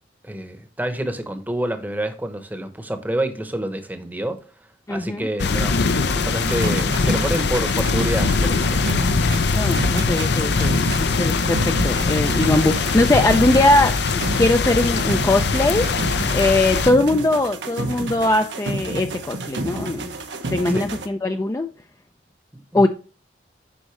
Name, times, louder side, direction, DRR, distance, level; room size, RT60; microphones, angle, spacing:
voice 1, 0.2-4.4 4.9-8.9 20.7-20.9 22.5-22.9, right 1 dB, 10° right, 0.9 m, -28 dB
voice 2, 4.9-5.3 9.5-15.9 16.3-20.1 20.5-21.7 22.7-22.9, left 2 dB, 20° left, 0.4 m, -20 dB
sound 1, 5.4-16.9, left 4 dB, 65° left, 0.6 m, -21 dB
sound 2, 6.5-21.1, right 2 dB, 80° right, 1.0 m, -30 dB
8.4 x 5.3 x 3.1 m
head